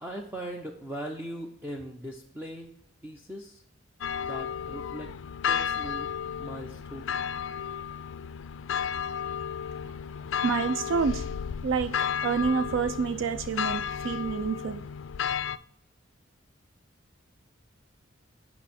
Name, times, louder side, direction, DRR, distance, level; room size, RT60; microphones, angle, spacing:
voice 1, 0.0-2.7 3.0-3.6 4.2-5.1 5.5-6.1 6.4-7.2, right 1 dB, 10° right, 1 dB, 0.6 m, -39 dB
sound 1, 4.0-15.6, left 8 dB, 65° left, 0.3 m, -33 dB
voice 2, 10.4-11.3 11.6-14.8, right 5 dB, 65° right, 11 dB, 0.3 m, -28 dB
8.2 x 5.8 x 4.2 m, 0.74 s
head